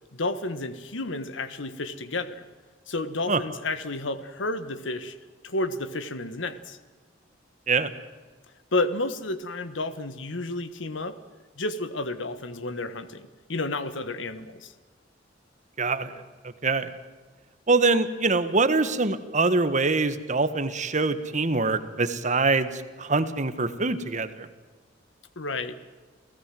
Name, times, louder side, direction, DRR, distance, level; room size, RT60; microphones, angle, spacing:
voice 1, 0.1-2.4 2.9-5.2 5.4-6.8 8.7-11.2 11.6-14.7 25.4-25.8, left 2 dB, 85° left, 12 dB, 1.4 m, -31 dB
voice 2, 15.8-16.1 16.6-16.9 17.7-24.5, right 3 dB, 40° right, 11 dB, 1.5 m, -24 dB
29.0 x 16.5 x 7.7 m, 1.4 s
head